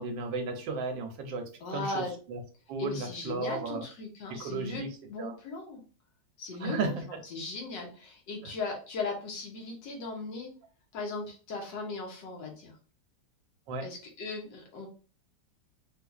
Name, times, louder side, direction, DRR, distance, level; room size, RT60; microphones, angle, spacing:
voice 1, 0.0-1.4 1.7-2.4 2.7-3.8 4.3-5.3 6.6-7.2 8.4-8.5 13.7-13.9, right 3 dB, 85° right, 4 dB, 1.4 m, -34 dB
voice 2, 1.6-2.1 2.8-5.8 6.4-6.9 7.3-10.5 10.9-12.7 13.8-14.9, left 3 dB, 75° left, 1 dB, 1.7 m, -38 dB
4.3 x 2.5 x 2.4 m, 0.37 s
omnidirectional pair, 2.0 m